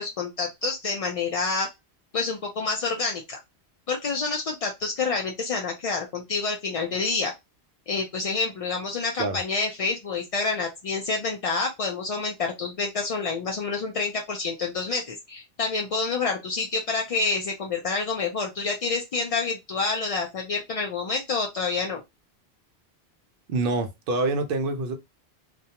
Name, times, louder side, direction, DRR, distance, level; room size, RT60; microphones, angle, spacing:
voice 1, 0.0-1.7 2.1-3.4 3.9-7.3 7.9-22.0, left 4 dB, 60° left, 0.3 m, -28 dB
voice 2, 23.5-25.0, right 3 dB, 65° right, 0.7 m, -26 dB
2.3 x 2.1 x 2.8 m
omnidirectional pair, 1.1 m